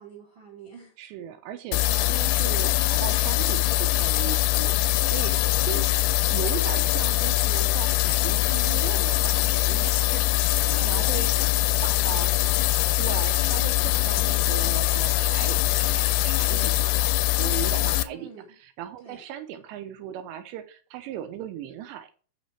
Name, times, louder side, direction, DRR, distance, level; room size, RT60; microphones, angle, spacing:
voice 1, 0.0-1.0 5.7-6.1 10.6-12.5 18.0-18.5 19.0-19.2, right 3 dB, 60° right, 1.2 m, -47 dB
voice 2, 1.0-5.8 6.3-10.4 10.7-11.3 11.8-12.3 13.0-17.1 17.4-18.3 18.6-22.1, right 10 dB, 80° right, 2.9 m, -37 dB
sound 1, 1.7-18.0, left 17 dB, 80° left, 2.7 m, -23 dB
9.0 x 5.6 x 4.3 m
omnidirectional pair, 5.2 m